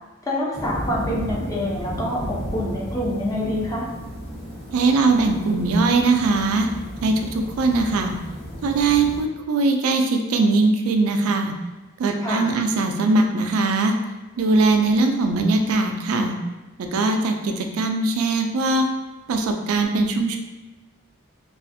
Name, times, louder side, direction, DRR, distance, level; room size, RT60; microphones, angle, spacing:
voice 1, 0.3-3.9 12.2-12.5, left 1 dB, 15° left, -4 dB, 0.5 m, -26 dB
sound 1, 0.5-9.2, equal, 45° left, 1.1 m, -34 dB
voice 2, 4.7-6.7 7.0-8.2 8.6-11.5 12.0-14.0 14.4-16.4 16.8-18.9 19.3-20.4, right 3 dB, 75° right, 4 dB, 0.3 m, -20 dB
2.4 x 2.4 x 2.6 m, 1.1 s
head